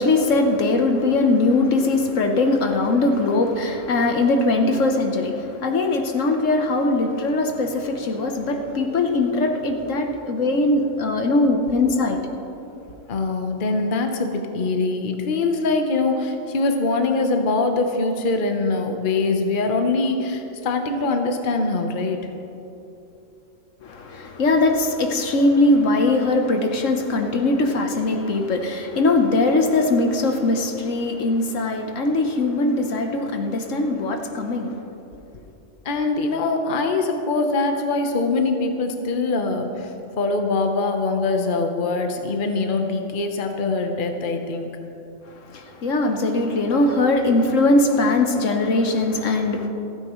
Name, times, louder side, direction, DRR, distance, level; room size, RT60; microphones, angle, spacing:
voice 1, 0.0-12.2 23.8-34.7 45.3-49.7, left 2 dB, 70° left, 4 dB, 1.3 m, -21 dB
voice 2, 13.1-22.3 35.8-39.9 40.2-44.7, left 3 dB, 40° left, 4 dB, 1.0 m, -23 dB
28.0 x 9.6 x 3.1 m, 2.9 s
omnidirectional pair, 1.4 m